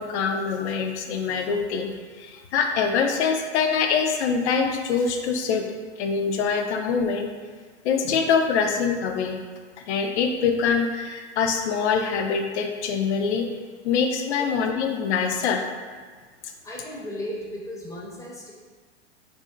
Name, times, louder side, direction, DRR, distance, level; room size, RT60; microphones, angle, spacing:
voice 1, 0.0-5.7 6.0-7.3 7.8-9.4 9.9-13.5 13.8-15.6, left 6 dB, 75° left, 4 dB, 0.5 m, -24 dB
voice 2, 16.6-18.5, equal, 10° left, -4 dB, 0.5 m, -35 dB
2.5 x 2.0 x 3.7 m, 1.5 s
hypercardioid pair, 110°, 34 cm